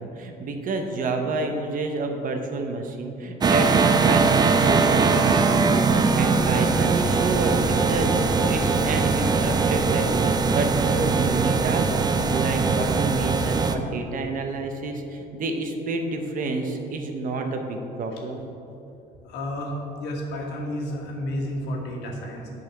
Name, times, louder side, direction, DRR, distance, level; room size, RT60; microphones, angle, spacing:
voice 1, 0.0-18.4, right 3 dB, 55° right, 5 dB, 0.9 m, -29 dB
sound 1, 3.4-13.7, right 4 dB, 25° right, 0.4 m, -21 dB
voice 2, 19.2-22.5, left 1 dB, 85° left, 0 dB, 1.4 m, -31 dB
8.1 x 4.1 x 5.8 m, 2.9 s
cardioid pair, 110°, 17 cm